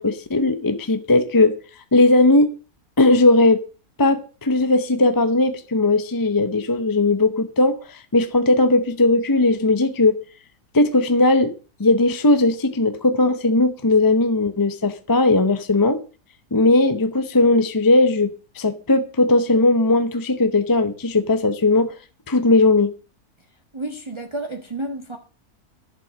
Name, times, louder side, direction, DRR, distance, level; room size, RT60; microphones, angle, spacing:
voice 1, 0.0-1.6 1.9-2.5 3.0-3.6 4.0-10.2 10.7-11.5 11.8-16.0 16.5-21.9 22.3-22.9, left 2 dB, 20° left, 0.6 m, -18 dB
voice 2, 23.7-25.2, right 1 dB, 20° right, 1.3 m, -30 dB
11.5 x 7.1 x 7.4 m
omnidirectional pair, 1.6 m